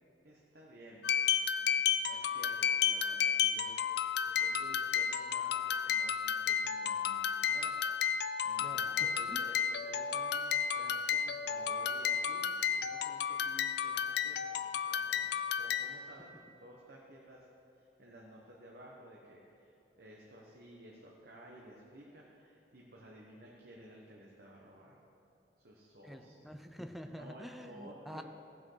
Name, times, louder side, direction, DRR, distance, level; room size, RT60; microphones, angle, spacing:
voice 1, 0.2-1.2 1.5-17.5 17.8-25.0 25.6-26.5 27.0-28.2, right 1 dB, 60° right, -3 dB, 1.2 m, -55 dB
sound 1, 1.0-16.1, left 7 dB, 65° left, 0.4 m, -32 dB
voice 2, 26.0-28.2, equal, ahead, 6 dB, 0.5 m, -47 dB
15.5 x 6.1 x 5.6 m, 3.0 s
head